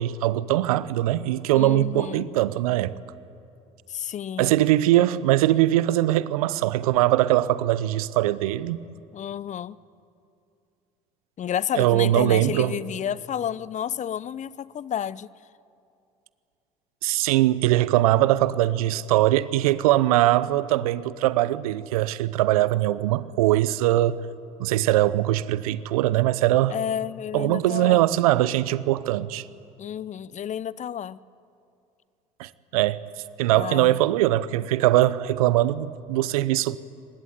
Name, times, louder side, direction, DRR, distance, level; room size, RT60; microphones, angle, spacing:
voice 1, 0.0-2.9 4.4-8.8 11.8-12.7 17.0-24.2 24.6-26.8 27.3-29.4 32.4-33.0 33.4-36.8, right 15 dB, 80° right, 0.8 m, -21 dB
voice 2, 1.6-2.3 3.9-4.7 9.1-9.8 11.4-15.3 26.7-28.0 29.8-31.2 33.5-34.0, left 9 dB, 40° left, 0.7 m, -31 dB
23.5 x 20.5 x 9.6 m
hypercardioid pair, 60°, 18 cm